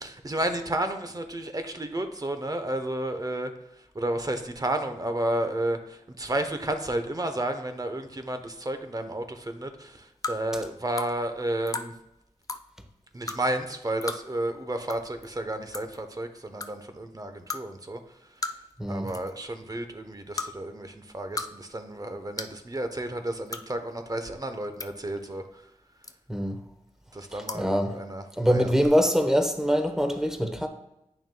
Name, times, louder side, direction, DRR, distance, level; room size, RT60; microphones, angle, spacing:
voice 1, 0.0-3.5 3.9-11.9 13.1-18.0 18.9-25.4 27.1-28.7, right 1 dB, 30° right, 7 dB, 0.8 m, -32 dB
sound 1, 10.2-10.4 11.0-11.1 11.7-11.9 12.4-12.6 13.3-13.4 14.0-14.2 14.9-15.0 15.2-15.3 15.7-16.0 16.6-16.7 17.5-17.6 18.4-18.7 19.0-19.3 20.3-20.5 21.1-21.5 21.7-21.8 22.4-22.6 23.5-23.6 24.5-24.9 26.0-26.4 27.4-27.6 28.8-28.9, left 3 dB, 30° left, 0.5 m, -34 dB
voice 2, 18.8-19.1 26.3-26.6 27.3-28.0 28.4-30.7, equal, 5° right, 5 dB, 1.0 m, -24 dB
8.9 x 5.9 x 2.3 m, 0.84 s
cardioid pair, 50°, 13 cm